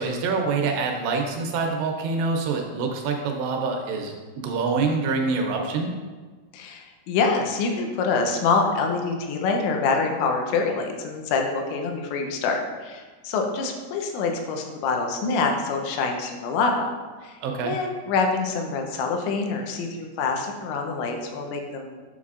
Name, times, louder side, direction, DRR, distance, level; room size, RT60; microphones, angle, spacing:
voice 1, 0.0-5.9 17.4-17.7, right 4 dB, 80° right, 2 dB, 2.6 m, -26 dB
voice 2, 6.5-16.9 17.2-22.0, left 4 dB, 90° left, 3 dB, 3.1 m, -26 dB
8.0 x 5.6 x 2.4 m, 1.4 s
omnidirectional pair, 5.2 m